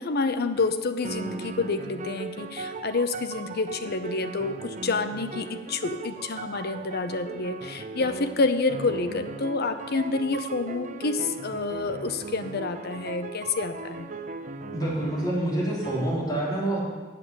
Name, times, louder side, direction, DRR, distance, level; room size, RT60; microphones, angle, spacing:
voice 1, 0.0-14.1, left 3 dB, 50° left, 9 dB, 0.7 m, -28 dB
sound 1, 0.5-0.8 1.0-15.5 15.8-16.1, right 3 dB, 40° right, 0.6 m, -38 dB
voice 2, 14.7-16.8, right 1 dB, 20° left, -6 dB, 3.2 m, -27 dB
8.5 x 6.9 x 7.6 m, 1.4 s
head